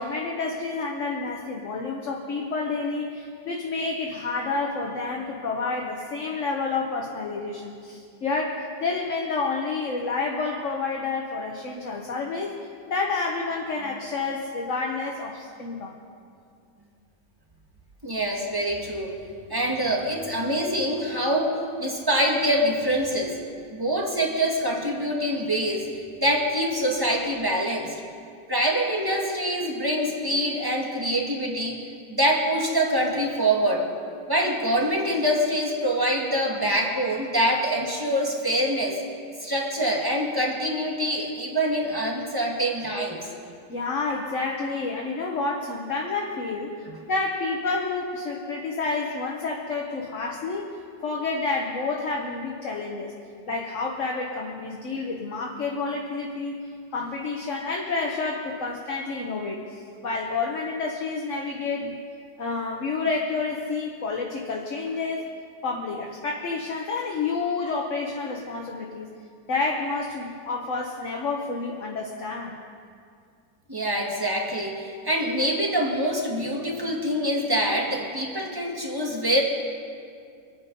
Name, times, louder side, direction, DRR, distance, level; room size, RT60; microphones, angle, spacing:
voice 1, 0.0-12.5 12.9-16.0 43.7-50.7 51.0-53.1 53.5-56.6 56.9-62.0 62.4-65.3 65.6-69.1 69.5-72.6, left 3 dB, 50° left, -1 dB, 1.4 m, -29 dB
voice 2, 18.0-19.2 19.5-23.3 23.7-25.9 26.2-27.9 28.5-31.8 32.1-33.9 34.3-39.0 39.4-43.2 73.7-79.4, equal, 15° right, -2 dB, 1.9 m, -25 dB
25.0 x 9.6 x 5.4 m, 2.3 s
omnidirectional pair, 1.9 m